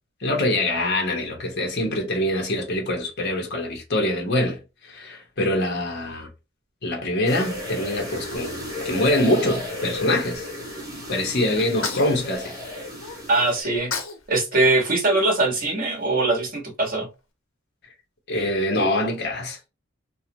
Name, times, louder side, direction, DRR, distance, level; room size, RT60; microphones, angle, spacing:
voice 1, 0.2-4.6 4.8-6.3 6.8-10.4 11.1-12.5 18.3-19.7, left 1 dB, 55° left, 1.2 m, -24 dB
sound 1, 7.3-13.6, left 1 dB, 20° right, 1.4 m, -34 dB
Sneeze, 11.6-13.2 13.6-14.2 14.5-16.0, left 4 dB, 80° left, 0.9 m, -32 dB
voice 2, 13.3-13.9 14.3-17.1, right 2 dB, 45° right, 1.5 m, -21 dB
3.0 x 3.0 x 2.9 m
head